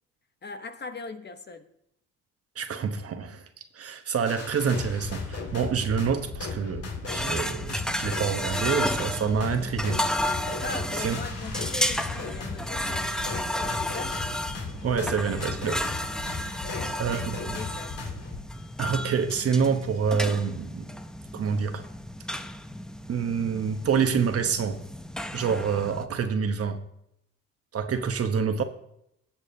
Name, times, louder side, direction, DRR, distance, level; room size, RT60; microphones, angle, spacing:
voice 1, 0.4-1.7 10.6-14.1 16.5-17.9, left 4 dB, 35° left, 8 dB, 1.0 m, -40 dB
voice 2, 2.6-3.4 3.7-10.1 11.0-11.1 14.8-15.8 16.3-16.6 17.0-17.6 18.8-20.9 21.3-21.8 23.1-24.8 25.3-26.8 27.7-28.6, right 6 dB, 50° right, 7 dB, 1.1 m, -27 dB
sound 1, 4.3-18.4, left 4 dB, 55° left, 2.1 m, -37 dB
sound 2, 7.1-26.0, left 1 dB, ahead, 0.6 m, -33 dB
17.0 x 7.2 x 2.8 m, 0.76 s
cardioid pair, 90°, 30 cm